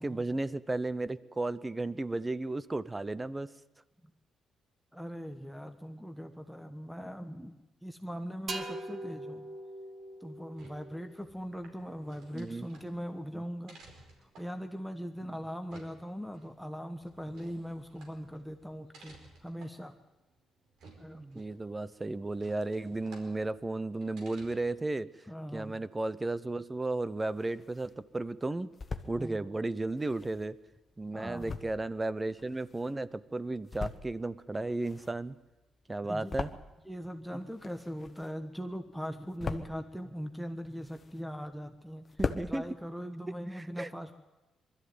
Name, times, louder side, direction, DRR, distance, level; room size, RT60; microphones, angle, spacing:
voice 1, 0.0-3.5 12.3-12.7 13.3-13.4 15.3-15.4 21.1-25.1 25.5-28.7 29.1-30.6 31.0-35.4 35.9-36.5 42.2-42.7 43.3-43.9, right 2 dB, 20° right, 17 dB, 0.7 m, -34 dB
voice 2, 4.9-7.6 7.8-9.5 10.2-13.8 14.4-19.9 21.0-21.4 25.3-25.7 29.2-29.4 31.1-31.6 36.1-36.3 36.9-42.1 42.5-44.1, equal, ahead, 6 dB, 1.2 m, -40 dB
sound 1, 8.5-12.1, right 2 dB, 40° right, 1.8 m, -43 dB
sound 2, 10.5-24.9, right 3 dB, 75° right, 4.8 m, -58 dB
sound 3, 27.1-28.0 28.4-29.2 29.9-33.1 33.5-34.3 34.6-37.0 37.3-38.6 38.9-39.9 40.4-41.5 41.8-41.9 42.1-42.5, left 4 dB, 35° left, 1.3 m, -40 dB
21.0 x 13.5 x 9.4 m, 1.0 s
cardioid pair, 90°, 0 cm